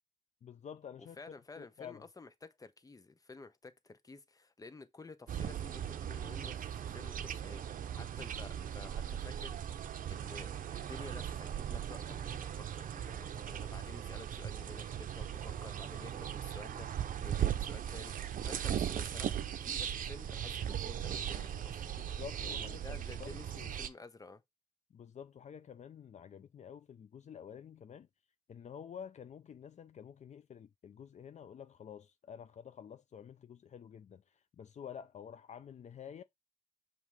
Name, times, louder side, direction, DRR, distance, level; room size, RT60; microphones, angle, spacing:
voice 1, 0.4-1.2 1.6-2.0 22.0-23.7 24.9-28.1 28.5-36.2, left 8 dB, 55° left, 0.5 m, -49 dB
voice 2, 1.0-21.9 22.4-24.4, left 3 dB, 25° left, 0.9 m, -52 dB
sound 1, 5.3-23.9, right 9 dB, 85° right, 0.7 m, -38 dB
7.3 x 3.0 x 4.8 m
wide cardioid pair, 115°, 14 cm